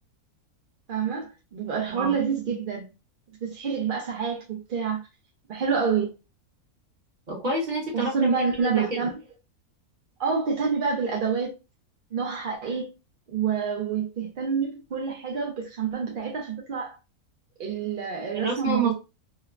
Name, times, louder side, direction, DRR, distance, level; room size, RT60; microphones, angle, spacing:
voice 1, 0.9-2.9 3.4-5.0 5.5-6.1 7.9-9.1 10.2-11.5 12.1-12.9 13.3-17.0 17.6-18.9, right 6 dB, 60° right, 0.5 m, -27 dB
voice 2, 7.3-8.3 8.6-9.0 18.3-18.9, right 2 dB, 35° right, 1.0 m, -28 dB
3.1 x 2.1 x 2.3 m
omnidirectional pair, 1.6 m